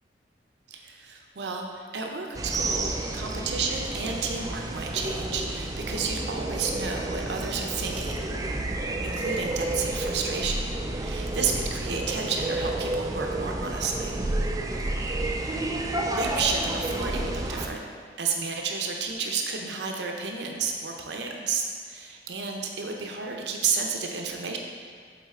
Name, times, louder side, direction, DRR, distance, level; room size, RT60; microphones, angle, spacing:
voice 1, 0.7-8.2 9.0-10.6 10.9-14.2 15.4-15.6 16.1-17.8 18.2-24.6, right 5 dB, 75° right, 2 dB, 0.6 m, -31 dB
sound 1, 2.3-17.7, right 2 dB, 20° right, 0.4 m, -30 dB
7.4 x 3.9 x 3.6 m, 2.1 s
head